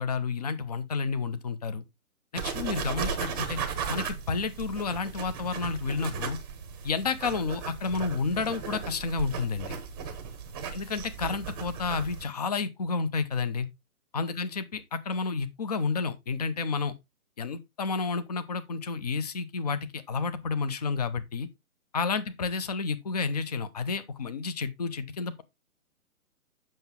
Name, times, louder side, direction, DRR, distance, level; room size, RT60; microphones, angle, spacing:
voice 1, 0.0-1.8 2.3-3.6 3.9-6.4 6.8-9.8 10.7-13.7 14.1-16.9 17.4-21.5 21.9-25.4, left 4 dB, 25° left, 0.7 m, -30 dB
sound 1, 2.3-12.2, right 6 dB, 15° right, 0.8 m, -36 dB
7.8 x 5.9 x 3.6 m
figure-of-eight pair, 145°, 44 cm